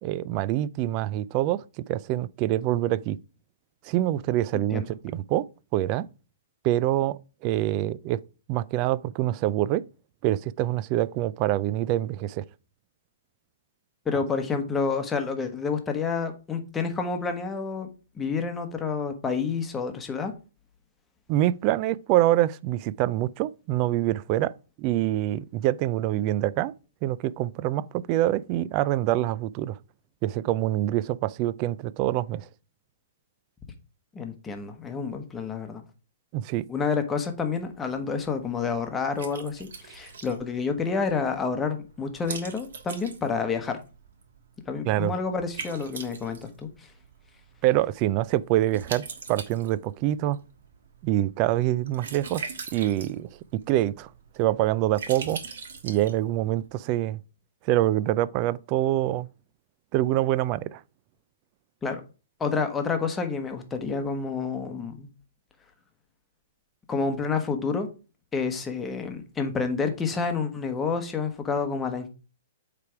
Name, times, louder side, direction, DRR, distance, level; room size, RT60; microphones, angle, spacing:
voice 1, 0.0-3.2 3.8-5.4 5.7-6.1 6.6-8.2 8.5-9.8 10.2-12.4 21.3-24.5 24.8-26.7 27.0-29.8 30.2-32.5 36.3-36.7 44.8-45.1 47.6-50.4 51.0-52.4 52.7-53.3 53.7-54.1 54.4-55.4 55.8-57.2 57.6-59.3 59.9-60.8, right 14 dB, 35° right, 0.3 m, -25 dB
voice 2, 4.5-4.9 14.0-17.9 18.2-20.3 34.1-35.8 36.7-43.8 44.7-46.9 61.8-62.0 62.4-65.1 66.9-67.9 68.3-72.1, left 5 dB, 15° left, 1.0 m, -29 dB
Liquid, 37.2-56.7, right 5 dB, 70° right, 1.4 m, -43 dB
8.3 x 3.3 x 4.5 m
hypercardioid pair, 145°, 0 cm